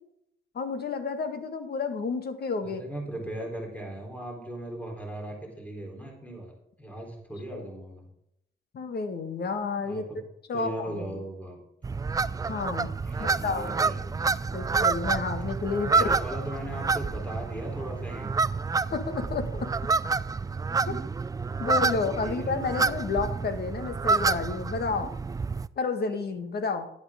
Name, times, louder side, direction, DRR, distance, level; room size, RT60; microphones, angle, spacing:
voice 1, 0.5-2.8 7.5-7.7 8.7-10.0 10.5-11.2 12.5-12.9 13.2-13.8 14.5-16.2 18.8-19.7 20.9-21.0 21.6-25.1 25.8-26.9, left 4 dB, 55° left, 8 dB, 1.8 m, -31 dB
voice 2, 2.6-6.5 6.8-8.1 9.8-10.2 10.5-11.6 13.0-14.3 15.9-18.4 22.2-22.6, right 1 dB, 5° left, 1 dB, 3.7 m, -38 dB
sound 1, 11.8-25.7, right 4 dB, 20° right, 0.4 m, -28 dB
11.5 x 11.0 x 3.7 m, 0.79 s
cardioid pair, 90°, 20 cm